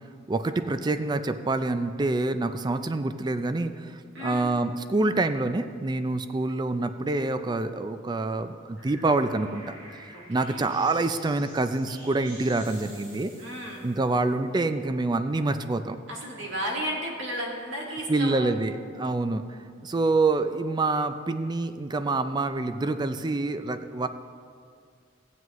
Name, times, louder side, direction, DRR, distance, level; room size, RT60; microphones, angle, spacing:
voice 1, 0.3-13.3 13.8-16.0 18.1-24.1, right 2 dB, 20° right, 10 dB, 0.4 m, -27 dB
voice 2, 4.1-4.5 10.1-10.7 13.4-13.9 16.1-18.5, equal, 65° right, -2 dB, 2.0 m, -34 dB
sound 1, 8.4-14.9, right 1 dB, 85° right, 2.8 m, -49 dB
15.0 x 9.2 x 3.1 m, 2.1 s
head